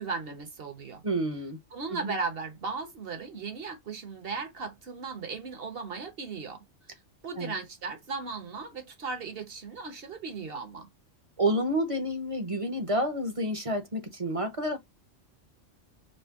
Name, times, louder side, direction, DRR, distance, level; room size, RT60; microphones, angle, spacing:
voice 1, 0.0-1.0 1.7-6.6 7.2-10.9, right 4 dB, 50° right, 1.2 m, -36 dB
voice 2, 1.0-1.6 1.9-2.1 7.4-7.5 11.4-14.8, right 1 dB, 30° right, 0.8 m, -29 dB
5.1 x 2.1 x 3.6 m
omnidirectional pair, 1.3 m